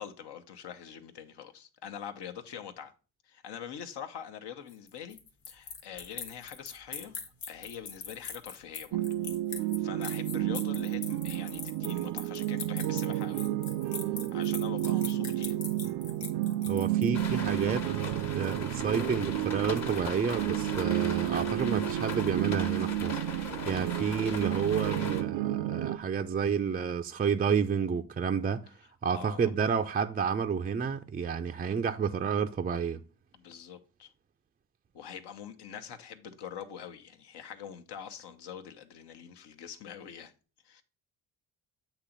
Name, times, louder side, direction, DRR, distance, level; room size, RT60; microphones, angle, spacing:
voice 1, 0.0-2.9 3.2-5.2 5.5-7.2 7.5-9.0 9.8-13.4 14.3-15.6 29.1-29.5 33.3-34.1 34.9-40.3 40.6-40.8, left 8 dB, 70° left, 1.0 m, -44 dB
sound 1, 4.7-17.3, left 6 dB, 90° left, 1.5 m, -42 dB
sound 2, 8.9-26.0, right 14 dB, 75° right, 0.5 m, -31 dB
voice 2, 16.7-28.6 29.0-33.0, right 6 dB, 25° right, 0.4 m, -30 dB
sound 3, 17.1-25.2, left 5 dB, 40° left, 1.2 m, -40 dB
8.4 x 3.0 x 5.0 m
cardioid pair, 90°, 42 cm